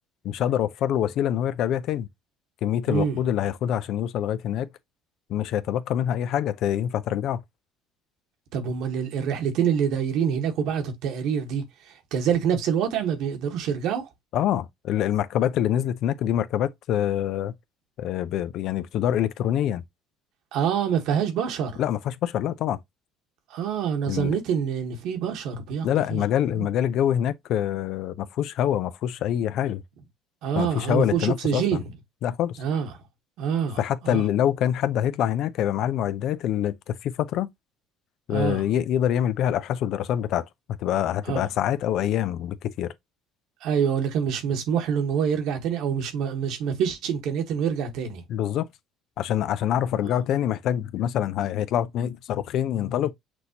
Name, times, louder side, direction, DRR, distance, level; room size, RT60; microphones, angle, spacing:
voice 1, 0.2-2.1 2.6-4.7 5.3-7.4 14.3-17.5 18.0-19.8 21.8-22.8 24.1-24.4 25.8-29.8 30.5-31.8 32.2-32.6 33.8-37.5 38.3-40.5 40.8-42.9 48.3-48.7 49.2-53.1, left 10 dB, 65° left, 0.4 m, -25 dB
voice 2, 2.9-3.2 8.5-14.1 20.5-21.8 23.5-26.2 26.5-26.7 30.4-31.8 32.6-32.9 33.4-33.8 34.0-34.3 38.3-38.6 41.3-41.5 43.6-48.2 50.0-50.1, right 7 dB, 70° right, 1.3 m, -26 dB
6.1 x 2.7 x 2.8 m
supercardioid pair, 85°, 0 cm